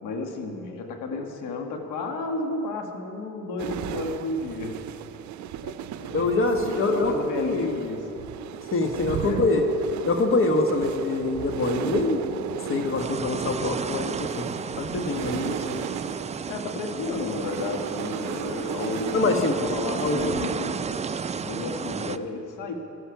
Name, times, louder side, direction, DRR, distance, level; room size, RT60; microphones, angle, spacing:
voice 1, 0.0-4.8 6.0-6.3 6.6-8.2 9.0-9.5 16.5-21.0 21.4-22.7, left 3 dB, 90° left, 3 dB, 1.4 m, -32 dB
sound 1, 3.6-20.5, right 10 dB, 70° right, 0.6 m, -36 dB
voice 2, 6.1-7.8 8.7-9.6 10.0-15.9 19.1-19.6 20.0-20.3, left 2 dB, 45° left, 5 dB, 1.2 m, -25 dB
sound 2, 13.0-22.2, right 6 dB, 25° right, 0.4 m, -33 dB
14.5 x 10.0 x 5.9 m, 2.9 s
cardioid pair, 90°, 30 cm